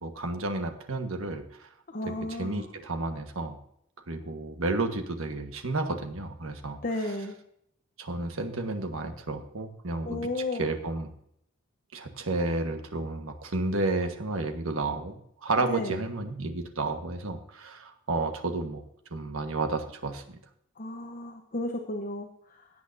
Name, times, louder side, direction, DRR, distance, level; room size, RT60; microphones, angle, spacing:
voice 1, 0.0-1.7 2.0-3.6 4.1-6.8 8.0-10.3 10.6-11.1 11.9-18.8 19.1-20.4, right 2 dB, 75° right, 6 dB, 1.4 m, -31 dB
voice 2, 1.9-2.7 6.8-7.4 10.0-10.7 15.7-16.0 20.8-22.7, left 2 dB, 40° left, 4 dB, 1.0 m, -33 dB
17.0 x 8.3 x 2.7 m, 0.71 s
head